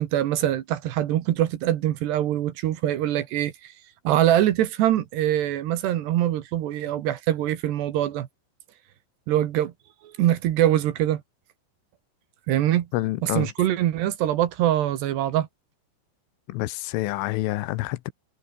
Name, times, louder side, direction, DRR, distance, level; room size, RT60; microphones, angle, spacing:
voice 1, 0.0-3.7 4.0-8.3 9.3-9.7 10.0-11.2 12.5-12.9 13.2-15.5, right 12 dB, 70° right, 3.3 m, -23 dB
voice 2, 12.9-13.5 16.5-18.1, left 18 dB, 85° left, 3.5 m, -27 dB
omnidirectional pair, 5.6 m